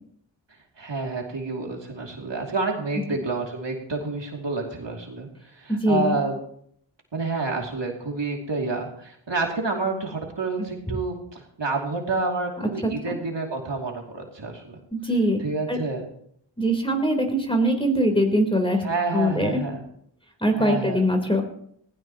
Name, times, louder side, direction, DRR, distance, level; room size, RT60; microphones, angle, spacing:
voice 1, 0.8-5.3 5.5-6.4 7.1-14.8 15.4-16.1 18.8-19.8 20.6-21.0, right 3 dB, 70° right, 1 dB, 2.9 m, -29 dB
voice 2, 5.7-6.2 10.9-11.0 12.8-13.2 14.9-15.4 15.7-15.8 16.6-18.8 19.1-19.6 20.4-21.4, equal, 10° left, 3 dB, 3.8 m, -22 dB
19.5 x 16.0 x 3.0 m, 0.67 s
wide cardioid pair, 45°, 46 cm